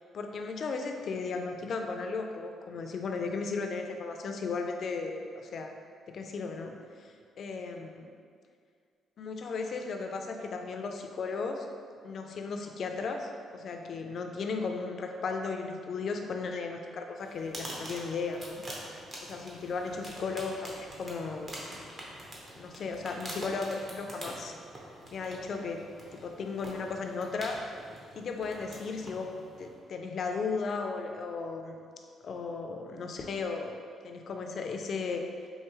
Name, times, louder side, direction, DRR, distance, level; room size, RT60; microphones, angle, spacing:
voice 1, 0.1-5.7 6.1-8.1 9.2-11.7 12.0-18.6 19.2-21.5 22.6-24.5 25.1-25.8 26.1-27.6 28.2-31.8 32.2-33.8 34.0-35.2, left 4 dB, 60° left, 4 dB, 0.4 m, -35 dB
sound 1, 17.2-29.8, right 1 dB, 40° right, 0.9 m, -45 dB
4.7 x 2.7 x 3.0 m, 2.2 s
cardioid pair, 90°, 0 cm